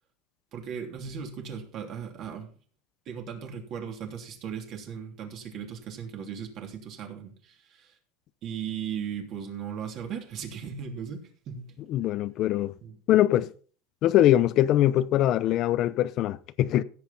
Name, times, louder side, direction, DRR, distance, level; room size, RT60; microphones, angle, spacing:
voice 1, 0.5-2.5 3.0-7.9 8.4-11.8 12.8-13.0, right 7 dB, 35° right, 3.1 m, -37 dB
voice 2, 11.9-12.7 13.1-13.5 14.0-16.8, left 13 dB, 40° left, 0.7 m, -22 dB
16.0 x 8.2 x 4.2 m
supercardioid pair, 160°, 0 cm